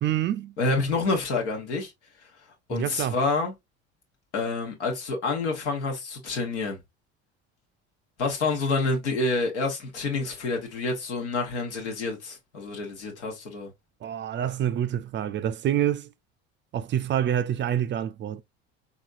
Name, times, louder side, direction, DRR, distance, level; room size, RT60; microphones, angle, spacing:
voice 1, 0.0-0.5 2.7-3.2 14.0-16.1 16.7-18.4, right 10 dB, 35° right, 0.4 m, -27 dB
voice 2, 0.6-1.9 2.7-3.5 4.3-6.8 8.2-13.7, left 3 dB, 90° left, 1.3 m, -28 dB
4.2 x 2.7 x 2.5 m
hypercardioid pair, 75°, 34 cm